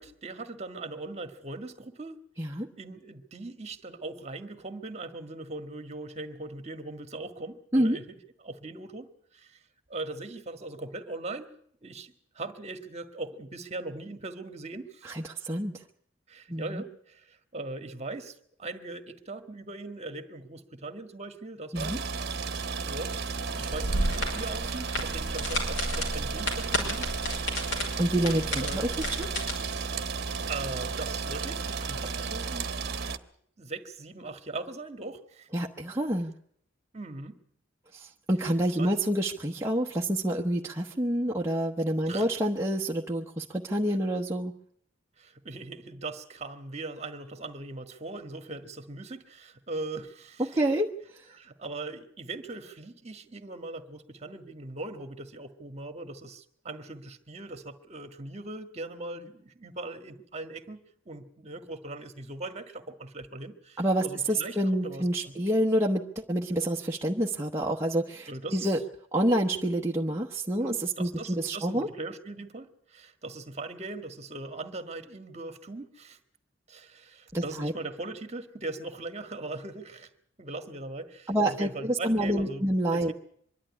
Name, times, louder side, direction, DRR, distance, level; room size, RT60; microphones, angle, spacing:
voice 1, 0.0-2.2 2.8-8.2 8.4-9.6 9.9-11.5 11.8-15.2 16.3-22.1 22.8-27.4 28.6-28.9 30.5-32.7 33.6-35.5 36.9-37.4 38.8-38.9 42.0-42.2 45.2-50.6 51.3-60.8 61.0-65.4 68.3-68.7 70.6-76.2 76.7-80.1 80.4-82.6 82.9-83.1, right 2 dB, 35° right, 8 dB, 1.6 m, -40 dB
voice 2, 15.0-15.8 16.5-16.8 21.7-22.0 28.0-28.9 29.2-29.3 35.5-36.3 37.9-44.5 50.4-50.9 51.1-51.2 63.8-68.8 69.1-71.9 77.3-77.7 81.3-83.1, right 1 dB, 15° right, -2 dB, 1.0 m, -28 dB
sound 1, 21.7-33.2, right 5 dB, 55° right, 1.1 m, -33 dB
sound 2, 23.7-29.5, equal, 70° left, 5.5 m, -32 dB
24.5 x 11.5 x 9.8 m, 0.67 s
head